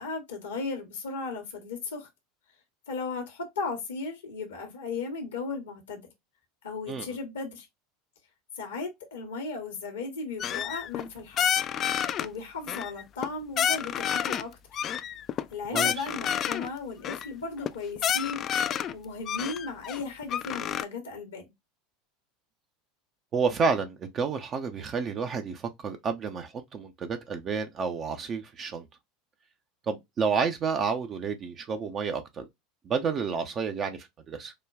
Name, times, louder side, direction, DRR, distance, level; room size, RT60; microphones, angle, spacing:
voice 1, 0.0-2.1 2.9-6.1 6.6-7.7 8.5-11.7 12.2-14.8 15.5-21.5, left 4 dB, 75° left, 1.0 m, -36 dB
sound 1, 10.4-11.1 11.4-12.3 12.7-13.3 13.6-14.4 14.7-16.7 17.0-17.3 17.6-17.7 18.0-18.9 19.3-20.8, left 9 dB, 35° left, 0.3 m, -29 dB
voice 2, 15.7-16.1 23.3-28.9 29.9-32.5 32.9-34.5, right 5 dB, 35° right, 0.5 m, -30 dB
4.9 x 2.2 x 2.3 m
figure-of-eight pair, 80°, 0 cm